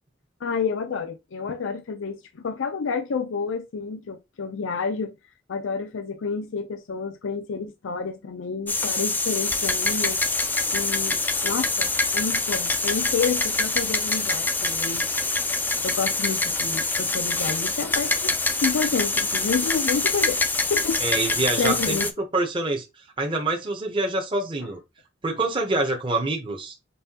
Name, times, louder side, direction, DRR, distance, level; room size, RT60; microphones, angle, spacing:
voice 1, 0.4-5.1 5.5-10.2 10.7-15.1 15.8-20.4 20.7-22.1, left 5 dB, 85° left, 0.5 m, -29 dB
sound 1, 8.7-22.1, left 3 dB, 10° left, 0.3 m, -25 dB
voice 2, 21.0-22.1 22.3-22.8 23.2-24.8 25.2-26.7, right 2 dB, 25° right, 0.8 m, -26 dB
5.4 x 2.7 x 2.8 m
head